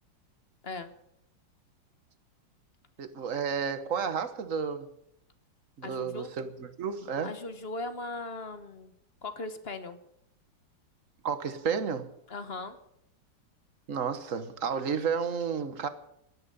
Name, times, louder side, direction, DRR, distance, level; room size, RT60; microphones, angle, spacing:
voice 1, 3.0-4.9 5.8-7.3 11.2-12.1 13.9-15.9, right 6 dB, 45° right, 11 dB, 1.3 m, -31 dB
voice 2, 5.8-6.3 7.2-8.9 9.2-10.0 12.3-12.8, left 3 dB, 40° left, 10 dB, 1.0 m, -38 dB
18.5 x 12.5 x 5.5 m, 0.77 s
omnidirectional pair, 2.4 m